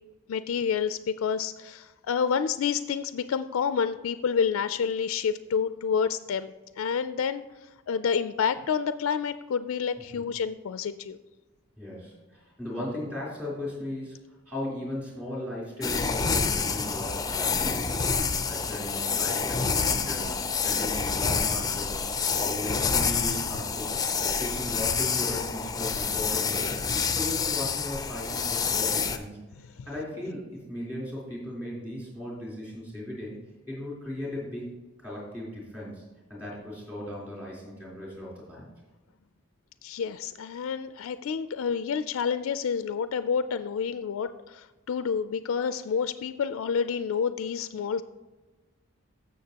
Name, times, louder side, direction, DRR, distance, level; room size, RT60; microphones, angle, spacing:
voice 1, 0.3-11.2 29.8-29.9 39.8-48.0, left 6 dB, 70° left, 12 dB, 0.3 m, -29 dB
voice 2, 10.0-10.3 11.8-14.1 14.5-18.1 18.5-20.3 20.6-22.1 22.4-24.0 24.4-26.7 27.1-29.4 29.8-30.4 30.7-33.4 33.7-34.7 35.0-36.0 36.3-38.7, left 1 dB, 5° right, -5 dB, 3.5 m, -37 dB
sound 1, 15.8-29.2, left 5 dB, 20° left, 0.5 m, -28 dB
15.0 x 6.6 x 2.9 m, 1.2 s
head